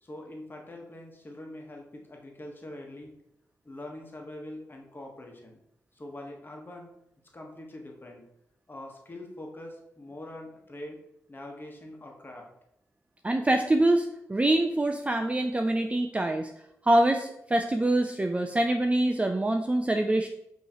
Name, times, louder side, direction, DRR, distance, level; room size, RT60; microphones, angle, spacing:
voice 1, 0.0-3.1 3.6-5.6 5.9-6.9 7.3-8.2 8.7-11.0 11.3-12.5, left 1 dB, 35° left, 1 dB, 1.3 m, -43 dB
voice 2, 13.2-16.5 16.8-20.3, right 1 dB, 20° right, 4 dB, 0.4 m, -25 dB
5.3 x 3.0 x 2.9 m, 0.80 s
supercardioid pair, 45°, 6 cm